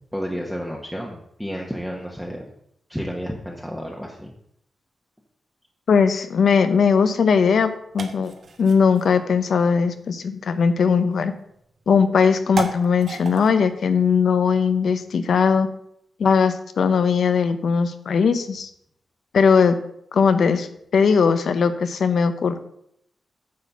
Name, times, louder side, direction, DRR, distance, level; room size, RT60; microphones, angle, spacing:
voice 1, 0.1-2.4 2.9-4.3, equal, ahead, -1 dB, 1.0 m, -31 dB
voice 2, 5.9-8.3 8.6-11.3 11.9-15.7 16.2-18.7 19.3-19.8 20.1-22.6, left 6 dB, 70° left, 10 dB, 0.8 m, -19 dB
sound 1, 6.7-15.4, right 4 dB, 55° right, 1.1 m, -38 dB
9.5 x 4.2 x 7.1 m, 0.73 s
wide cardioid pair, 140°, 0 cm